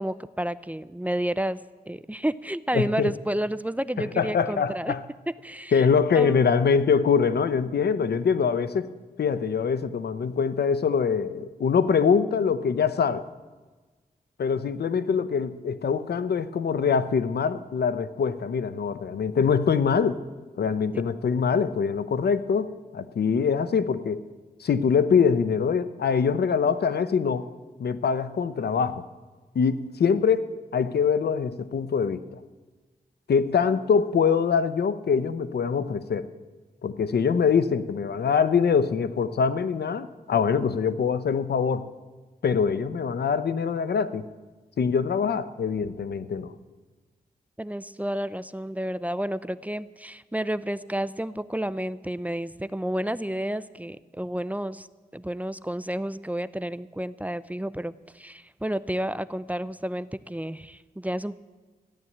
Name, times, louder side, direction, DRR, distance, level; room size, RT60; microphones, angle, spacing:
voice 1, 0.0-1.6 1.9-4.9 5.4-5.9 6.2-6.5 47.6-54.9 55.1-61.4, right 1 dB, 10° right, 15 dB, 0.5 m, -31 dB
voice 2, 2.7-3.1 4.0-5.0 5.7-8.9 9.2-13.2 14.4-20.2 20.6-24.2 24.6-27.5 27.8-29.0 29.5-32.4 33.3-36.3 36.8-41.9 42.4-44.3 44.8-46.5, left 6 dB, 85° left, 13 dB, 0.8 m, -24 dB
14.5 x 11.0 x 8.6 m, 1.3 s
cardioid pair, 65°, 16 cm